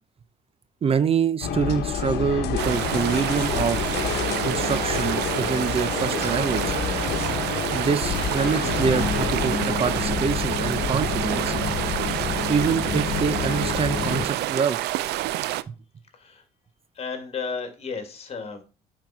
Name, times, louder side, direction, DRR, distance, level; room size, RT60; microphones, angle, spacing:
voice 1, 0.8-3.9 4.4-6.8 7.7-11.5 12.5-14.8, right 6 dB, 35° right, 13 dB, 0.6 m, -25 dB
sound 1, 1.4-14.3, left 7 dB, 75° left, 1.1 m, -28 dB
sound 2, 2.6-15.6, right 14 dB, 80° right, 0.6 m, -28 dB
Wind instrument woodwind instrument, 6.8-10.5, right 3 dB, 10° right, 4.0 m, -47 dB
voice 2, 16.1-16.4 16.9-18.6, left 5 dB, 35° left, 6 dB, 2.5 m, -33 dB
9.1 x 4.6 x 5.9 m, 0.33 s
cardioid pair, 110°, 17 cm